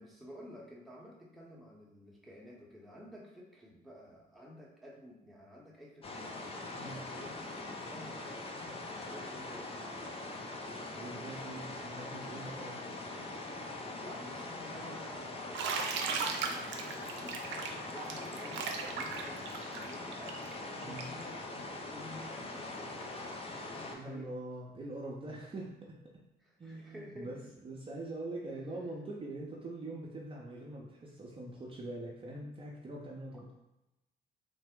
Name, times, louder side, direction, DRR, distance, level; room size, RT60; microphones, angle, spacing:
voice 1, 0.0-6.3 6.7-9.8 14.0-15.5 16.0-20.4 20.9-23.4 23.8-24.3 26.4-27.4 28.4-28.6, left 1 dB, ahead, -3 dB, 0.8 m, -52 dB
sound 1, 6.0-23.9, left 2 dB, 30° left, 0.5 m, -42 dB
voice 2, 10.9-12.8 20.8-21.0 23.9-26.1 26.6-27.4 27.6-33.5, right 2 dB, 30° right, -4 dB, 0.6 m, -43 dB
Bathtub (filling or washing), 15.5-21.2, right 5 dB, 75° right, 0.5 m, -37 dB
3.3 x 2.0 x 3.6 m, 0.94 s
cardioid pair, 80°, 19 cm